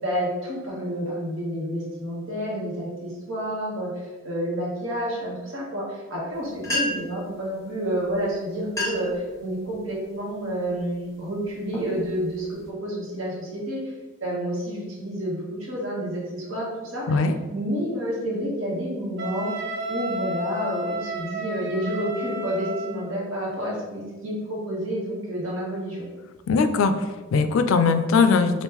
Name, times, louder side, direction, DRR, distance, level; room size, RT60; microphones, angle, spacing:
voice 1, 0.0-13.8 14.2-17.2 17.5-19.5 19.9-26.0, equal, 85° right, -4 dB, 1.2 m, -29 dB
sound 1, 6.3-6.4 6.6-7.2 8.1-8.2 8.6-9.2 9.7-10.0 10.6-10.9 11.4-12.7, left 1 dB, 15° left, 0.9 m, -31 dB
Wind instrument woodwind instrument, 19.2-23.1, equal, 60° right, 1.0 m, -32 dB
voice 2, 26.5-28.6, left 4 dB, 80° left, 9 dB, 0.3 m, -20 dB
3.6 x 2.5 x 2.9 m, 1.2 s
head